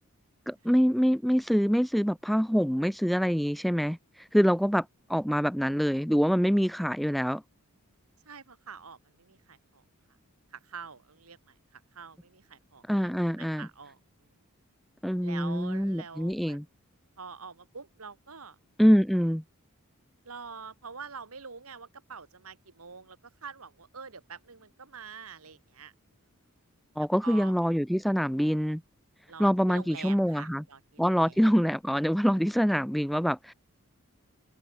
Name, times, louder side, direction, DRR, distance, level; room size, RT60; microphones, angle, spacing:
voice 1, 0.5-7.4 12.9-13.7 15.0-16.6 18.8-19.4 27.0-28.8 29.4-30.6 31.0-33.5, equal, ahead, 0.4 m, -25 dB
voice 2, 8.2-9.8 10.5-12.8 13.4-14.3 15.2-16.6 17.2-18.6 20.2-25.9 27.0-27.5 29.3-31.4, right 5 dB, 80° right, 1.8 m, -46 dB
open air
head